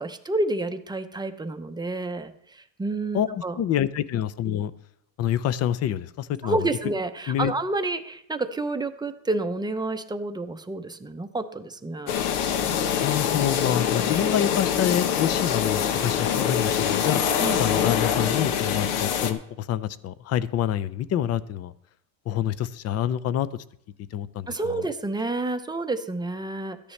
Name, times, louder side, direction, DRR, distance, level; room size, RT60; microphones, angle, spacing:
voice 1, 0.0-3.6 6.4-12.2 17.4-17.6 24.5-26.9, right 2 dB, 10° right, 8 dB, 0.6 m, -29 dB
voice 2, 3.1-4.7 5.2-6.6 7.3-7.5 13.0-17.2 17.6-21.7 22.3-23.5 24.1-24.8, left 10 dB, 40° left, 17 dB, 0.6 m, -27 dB
sound 1, 12.1-19.3, left 8 dB, 85° left, 1.1 m, -24 dB
14.0 x 10.0 x 3.3 m, 0.71 s
cardioid pair, 125°, 41 cm